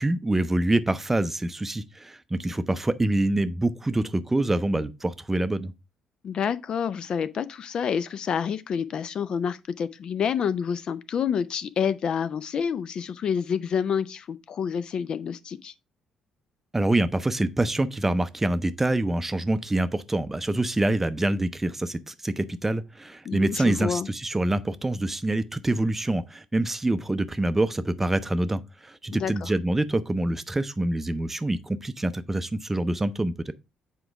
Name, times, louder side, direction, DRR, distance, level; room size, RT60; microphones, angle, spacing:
voice 1, 0.0-5.7 16.7-33.5, right 1 dB, 15° right, 0.5 m, -26 dB
voice 2, 6.2-15.7 23.2-24.1 29.1-29.5, left 7 dB, 45° left, 0.4 m, -28 dB
7.8 x 4.5 x 3.4 m
figure-of-eight pair, 45°, 2 cm